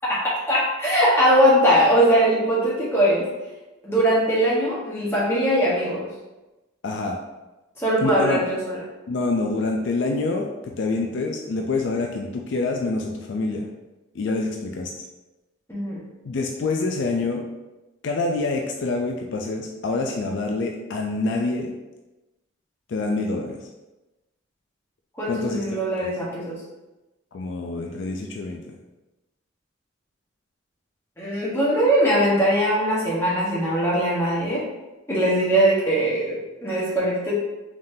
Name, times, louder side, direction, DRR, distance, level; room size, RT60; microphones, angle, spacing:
voice 1, 0.5-3.3 3.8-6.1 7.8-8.8 15.7-16.0 25.2-26.6 31.2-34.6 35.1-37.3, equal, 10° left, -7 dB, 1.0 m, -21 dB
voice 2, 6.8-7.2 8.0-8.4 9.1-13.7 14.1-14.9 16.2-17.4 18.0-21.7 22.9-23.6 25.3-25.6 26.0-26.1 27.3-28.8, left 3 dB, 60° left, 1 dB, 0.4 m, -26 dB
3.8 x 3.6 x 2.6 m, 1.1 s
head